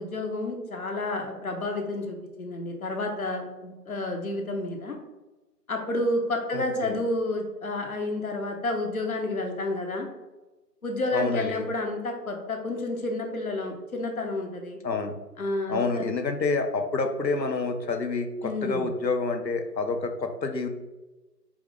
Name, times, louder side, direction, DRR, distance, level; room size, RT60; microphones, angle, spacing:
voice 1, 0.0-5.0 5.7-10.1 10.8-14.8 15.4-16.0 18.4-18.9, left 2 dB, 60° left, 3 dB, 0.9 m, -30 dB
voice 2, 6.5-7.0 11.1-11.7 14.8-15.2 15.7-20.7, left 3 dB, 85° left, 6 dB, 0.8 m, -28 dB
5.0 x 3.1 x 3.3 m, 1.1 s
figure-of-eight pair, 165°, 49 cm